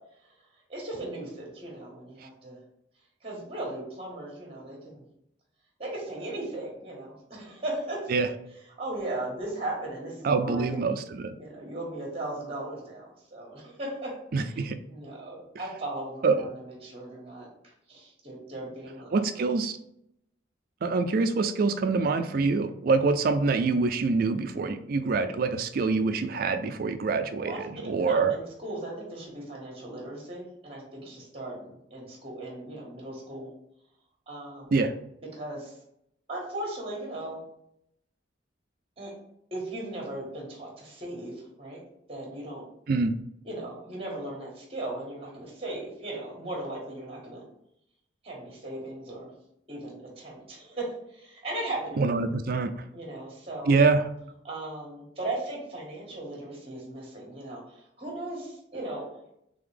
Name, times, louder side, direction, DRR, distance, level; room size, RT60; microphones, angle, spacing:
voice 1, 0.7-2.6 3.2-5.0 5.8-8.1 8.8-10.9 11.4-14.1 14.5-14.6 14.9-17.4 17.9-19.5 27.4-33.5 34.3-34.6 35.3-35.7 36.3-37.4 39.0-39.1 39.5-41.8 42.1-42.6 43.4-47.4 48.2-49.3 49.7-52.1 52.9-53.7 54.4-59.1, right 1 dB, 30° right, -2 dB, 1.4 m, -37 dB
voice 2, 10.2-11.3 14.3-14.8 16.2-16.5 19.1-19.8 20.8-28.3 34.7-34.9 42.9-43.1 52.0-52.7 53.7-54.1, right 4 dB, 50° right, 8 dB, 0.4 m, -25 dB
3.9 x 3.4 x 3.3 m, 0.77 s
head